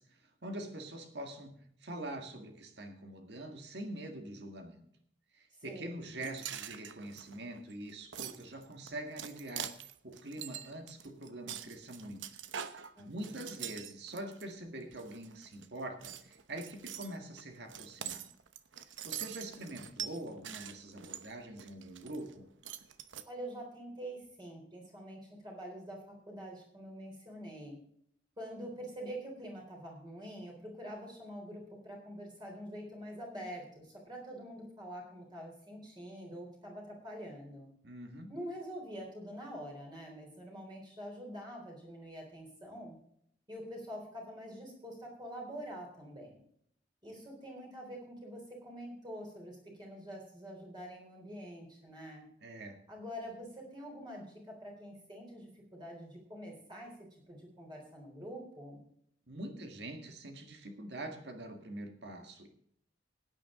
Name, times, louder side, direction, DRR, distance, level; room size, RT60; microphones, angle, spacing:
voice 1, 0.0-1.5 1.8-4.8 5.3-9.7 10.0-12.3 13.0-18.2 19.0-22.5 37.8-38.3 52.4-52.8 59.3-62.5, right 1 dB, 60° right, 5 dB, 1.9 m, -44 dB
voice 2, 5.7-6.1 13.0-13.5 23.3-27.8 28.4-37.7 38.3-43.0 43.5-46.4 47.0-52.3 52.9-56.9 57.3-58.8, equal, 25° right, -2 dB, 3.7 m, -46 dB
sound 1, 6.2-14.4 14.9-15.7 16.0-22.3 22.6-23.2, right 9 dB, 90° right, 0.9 m, -44 dB
17.0 x 9.6 x 3.8 m, 0.68 s
head